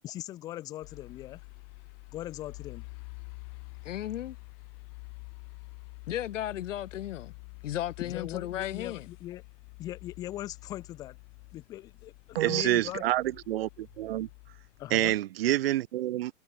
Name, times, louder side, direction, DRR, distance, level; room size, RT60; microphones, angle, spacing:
voice 1, 0.0-1.4 2.1-2.9 8.0-9.4 9.8-11.2 11.5-13.0 14.8-15.1, left 14 dB, 10° left, 0.7 m, -40 dB
sound 1, 0.8-15.2, left 40 dB or more, 30° left, 5.8 m, -48 dB
voice 2, 3.8-4.3 6.1-7.3 7.6-9.1, left 12 dB, 50° left, 1.8 m, -34 dB
voice 3, 12.3-14.3 14.9-16.3, right 14 dB, 40° right, 1.1 m, -27 dB
hypercardioid pair, 165°, 47 cm